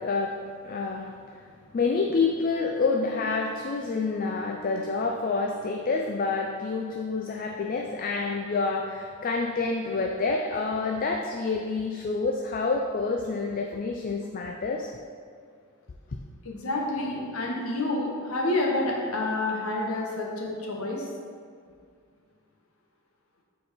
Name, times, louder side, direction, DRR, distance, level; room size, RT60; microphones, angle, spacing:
voice 1, 0.0-1.4 1.7-14.9, left 4 dB, 40° left, 2 dB, 0.4 m, -28 dB
voice 2, 16.4-21.1, left 2 dB, 75° left, -2 dB, 1.2 m, -28 dB
7.2 x 4.6 x 4.5 m, 2.1 s
head